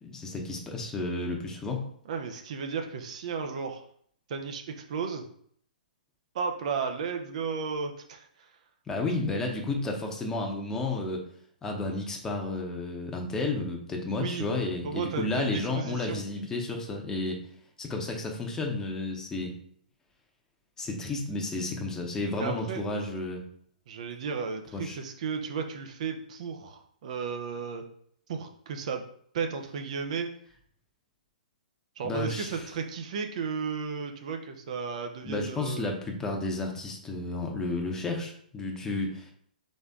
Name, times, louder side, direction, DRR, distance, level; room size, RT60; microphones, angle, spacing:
voice 1, 0.0-1.9 8.9-11.2 11.6-17.4 17.8-19.5 20.8-23.4 24.7-25.0 32.0-32.7 35.2-39.3, left 2 dB, 10° left, 1 dB, 0.9 m, -32 dB
voice 2, 2.1-3.8 4.3-5.2 6.3-8.5 14.2-14.5 14.8-16.2 22.4-22.8 23.9-27.8 28.3-29.0 29.3-30.3 32.0-35.9, right 5 dB, 50° right, 5 dB, 0.7 m, -34 dB
4.2 x 3.3 x 3.6 m, 0.63 s
figure-of-eight pair, 120°, 5 cm